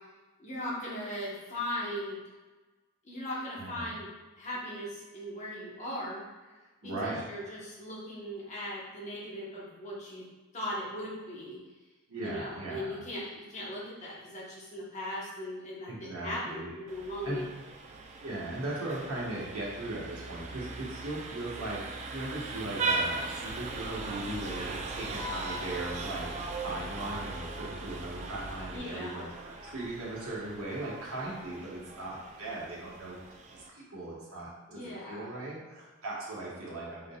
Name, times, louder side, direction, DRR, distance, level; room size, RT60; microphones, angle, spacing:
voice 1, 0.4-2.2 3.0-4.1 4.4-6.5 6.8-10.2 10.5-11.6 12.2-17.4 28.7-29.3 34.7-35.2, left 1 dB, 35° left, -5 dB, 1.1 m, -38 dB
voice 2, 3.6-3.9 6.8-7.2 12.1-13.0 15.9-16.7 17.2-17.5 18.2-21.8 22.1-26.3 26.5-33.2 33.5-37.2, right 2 dB, 75° right, -5 dB, 1.3 m, -38 dB
Vehicle horn car horn honking, 16.9-33.7, right 3 dB, 30° right, 0.3 m, -39 dB
Vehicle horn car horn honking / Traffic noise roadway noise, 23.5-28.8, left 1 dB, 10° left, 0.6 m, -44 dB
4.9 x 3.8 x 2.3 m, 1.2 s
head